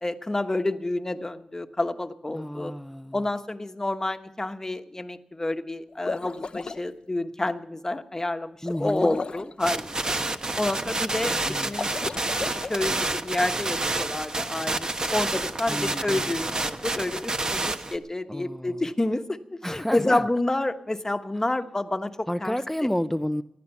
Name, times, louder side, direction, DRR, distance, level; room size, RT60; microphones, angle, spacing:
voice 1, 0.0-2.7 3.1-10.1 10.6-11.9 12.4-22.6, left 2 dB, 25° left, 1.1 m, -29 dB
voice 2, 2.3-3.2 8.6-9.2 11.4-11.7 15.7-16.3 18.3-18.8 19.6-20.2 22.3-23.4, equal, 5° left, 0.5 m, -30 dB
sound 1, 5.9-6.8 8.6-9.5 11.6-12.7, left 4 dB, 55° left, 0.6 m, -34 dB
sound 2, 9.6-18.0, right 2 dB, 40° right, 1.0 m, -29 dB
16.0 x 10.5 x 7.0 m
cardioid pair, 55°, 2 cm